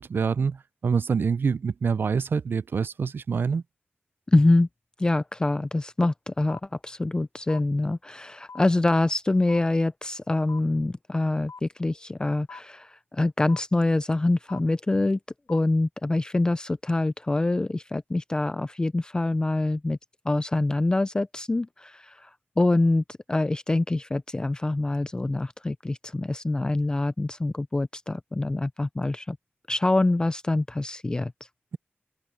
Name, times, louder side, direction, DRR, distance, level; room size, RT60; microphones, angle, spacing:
voice 1, 0.0-3.6, right 5 dB, 55° right, 0.4 m, -26 dB
voice 2, 4.3-4.7 5.0-15.2 15.5-20.0 20.3-29.4 29.7-31.3, left 2 dB, 20° left, 0.3 m, -25 dB
sound 1, 6.5-6.6 7.5-7.6 8.5-8.6 9.5-9.6 10.5-10.6 11.5-11.6 12.5-12.6 13.5-13.6 14.5-14.6 15.5-15.6, left 5 dB, 80° left, 0.9 m, -41 dB
wide cardioid pair, 135°, 4 cm